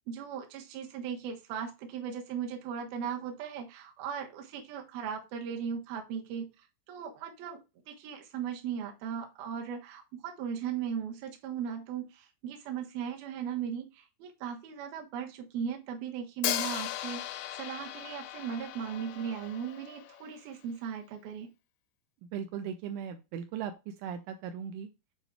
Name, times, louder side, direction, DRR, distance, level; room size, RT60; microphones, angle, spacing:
voice 1, 0.1-7.6 7.9-17.2 17.5-21.5, right 7 dB, 65° right, 2 dB, 2.6 m, -37 dB
Hi-hat, 16.4-20.4, left 13 dB, 85° left, 2.4 m, -37 dB
voice 2, 22.3-23.7 24.0-24.9, right 8 dB, 85° right, 7 dB, 2.9 m, -37 dB
8.1 x 4.1 x 4.6 m, 0.26 s
omnidirectional pair, 5.6 m